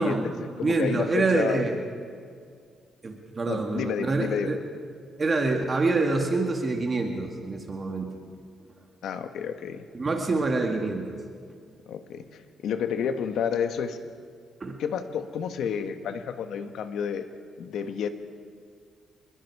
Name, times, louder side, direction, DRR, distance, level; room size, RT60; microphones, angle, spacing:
voice 1, 0.0-1.8 3.0-4.6 5.2-8.1 9.9-11.2 14.6-14.8, right 3 dB, 30° right, 2 dB, 2.2 m, -26 dB
voice 2, 0.6-1.6 3.5-4.5 9.0-9.8 11.9-14.0 14.8-17.3 17.6-18.1, left 7 dB, 75° left, 8 dB, 1.5 m, -30 dB
26.5 x 21.5 x 4.8 m, 2.1 s
cardioid pair, 125°, 0 cm